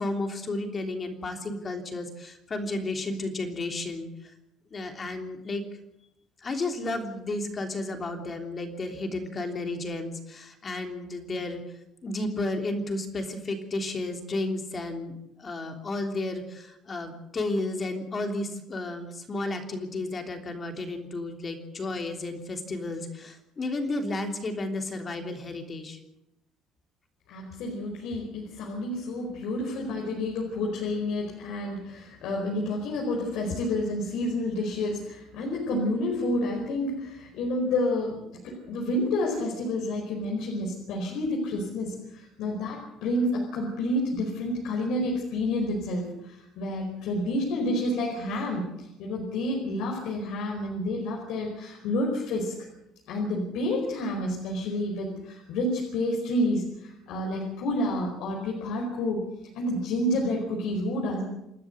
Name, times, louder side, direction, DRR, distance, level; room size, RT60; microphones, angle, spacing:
voice 1, 0.0-4.3 4.7-5.6 6.4-11.6 12.0-26.0, left 2 dB, 25° left, 4 dB, 3.3 m, -32 dB
voice 2, 27.3-52.6 53.1-59.3 59.5-61.2, left 1 dB, 70° left, -1 dB, 5.0 m, -29 dB
29.0 x 12.5 x 8.0 m, 0.86 s
cardioid pair, 155°, 0 cm